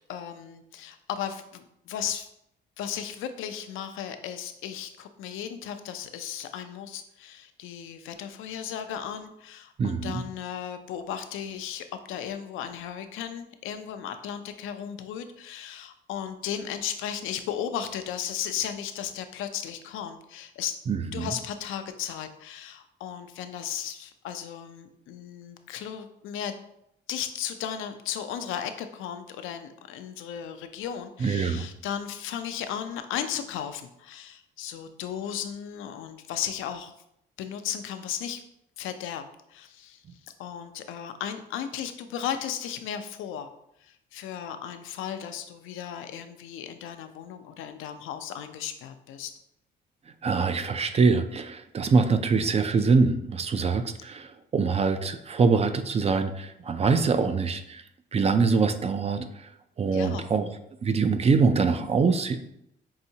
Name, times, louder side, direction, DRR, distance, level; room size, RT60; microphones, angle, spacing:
voice 1, 0.1-2.3 2.8-20.8 21.1-26.6 27.1-36.9 37.4-38.4 38.8-39.2 39.5-43.5 43.8-49.3 59.9-60.2, left 9 dB, 85° left, 8 dB, 0.4 m, -35 dB
voice 2, 9.8-10.2 20.9-21.3 31.2-31.6 50.2-57.8 58.1-59.5 59.8-60.5 60.8-62.4, right 4 dB, 30° right, 9 dB, 0.4 m, -24 dB
5.5 x 2.7 x 2.7 m, 0.77 s
cardioid pair, 90°, 20 cm